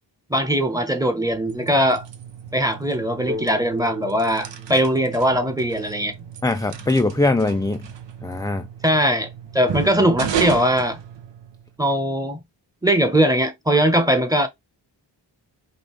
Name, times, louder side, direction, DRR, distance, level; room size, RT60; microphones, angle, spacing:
voice 1, 0.3-2.1 2.5-6.1 8.8-11.0 11.8-12.4 12.8-14.5, equal, 10° right, 1.1 m, -20 dB
sound 1, 1.2-11.7, right 8 dB, 75° right, 0.8 m, -34 dB
sound 2, 3.3-6.9, left 1 dB, 30° right, 3.2 m, -38 dB
voice 2, 6.4-7.9 8.2-8.7, left 2 dB, 10° left, 0.3 m, -21 dB
5.3 x 2.4 x 3.3 m
cardioid pair, 50°, 44 cm